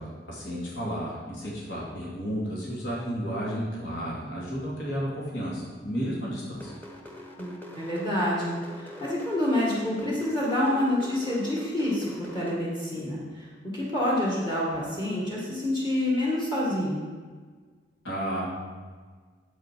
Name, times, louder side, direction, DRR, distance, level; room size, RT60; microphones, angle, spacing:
voice 1, 0.0-6.7 18.0-18.5, equal, 75° left, -5 dB, 2.5 m, -32 dB
sound 1, 6.5-12.6, equal, 10° left, 1.1 m, -43 dB
voice 2, 7.4-17.0, left 1 dB, 25° left, -6 dB, 1.9 m, -28 dB
9.2 x 7.9 x 4.6 m, 1.5 s
head